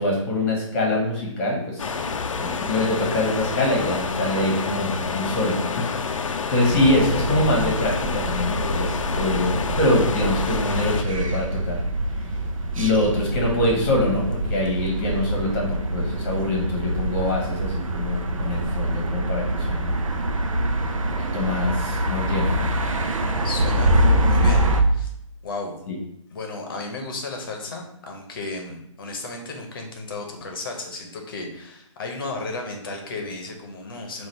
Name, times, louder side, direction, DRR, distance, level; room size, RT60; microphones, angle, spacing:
voice 1, 0.0-2.0 2.3-11.8 12.8-20.0 21.2-22.7 25.9-26.0, left 1 dB, 25° left, -2 dB, 1.2 m, -24 dB
sound 1, 1.8-11.0, left 5 dB, 75° left, 0.5 m, -28 dB
sound 2, 6.6-24.8, right 1 dB, 80° right, 0.6 m, -25 dB
voice 2, 23.4-25.1 25.4-25.7 26.3-34.3, left 3 dB, 45° left, 2 dB, 0.8 m, -34 dB
3.8 x 2.5 x 4.4 m, 0.74 s
hypercardioid pair, 160°, 17 cm